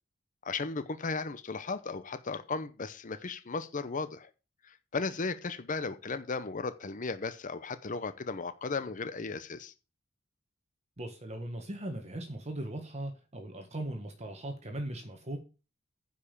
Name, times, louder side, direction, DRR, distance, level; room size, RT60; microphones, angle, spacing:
voice 1, 0.4-4.3 4.6-9.7, left 4 dB, 40° left, 0.7 m, -36 dB
voice 2, 11.0-15.4, right 1 dB, 35° right, 1.6 m, -39 dB
9.9 x 5.4 x 6.5 m
head